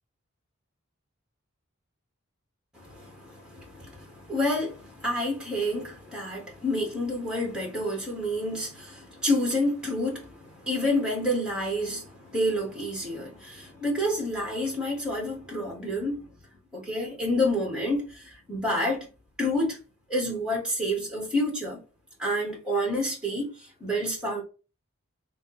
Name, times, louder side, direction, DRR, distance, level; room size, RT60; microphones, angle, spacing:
voice 1, 2.7-16.3 16.7-19.1 19.4-19.8 20.1-21.8 22.2-24.4, left 1 dB, 5° right, 1.6 m, -29 dB
3.6 x 2.9 x 4.1 m
head